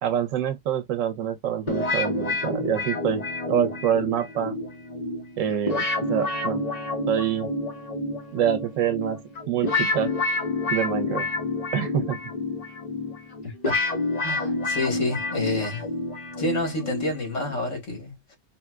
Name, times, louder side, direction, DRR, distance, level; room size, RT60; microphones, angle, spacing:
voice 1, 0.0-4.6 5.4-5.8 6.1-6.6 7.1-7.5 8.3-10.1 10.7-11.3 11.7-12.2, right 9 dB, 85° right, 1.0 m, -26 dB
sound 1, 1.7-17.6, left 2 dB, 35° left, 1.0 m, -29 dB
voice 2, 14.2-15.8 16.4-18.4, left 2 dB, 70° left, 1.7 m, -29 dB
4.2 x 2.1 x 2.2 m
omnidirectional pair, 1.3 m